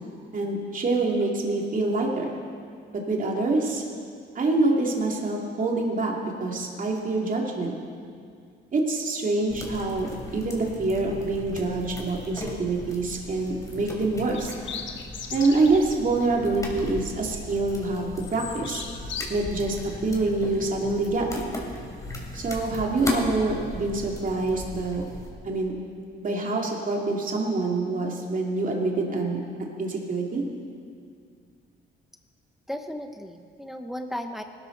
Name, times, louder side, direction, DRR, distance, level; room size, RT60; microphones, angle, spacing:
voice 1, 0.3-2.3 3.1-3.8 4.3-6.1 6.4-7.8 8.7-14.5 15.3-18.8 19.3-21.3 22.3-25.0 25.4-25.7 26.2-29.4 29.8-30.4, right 3 dB, 45° right, 0 dB, 2.6 m, -26 dB
sound 1, 9.5-25.3, left 1 dB, 15° left, 3.2 m, -36 dB
sound 2, 13.2-13.4 14.2-15.8 16.3-16.4 16.8-17.6 17.9-19.3, left 7 dB, 70° left, 1.3 m, -38 dB
voice 2, 32.7-34.4, equal, ahead, 5 dB, 1.0 m, -35 dB
20.0 x 12.5 x 4.0 m, 2.3 s
cardioid pair, 90°, 20 cm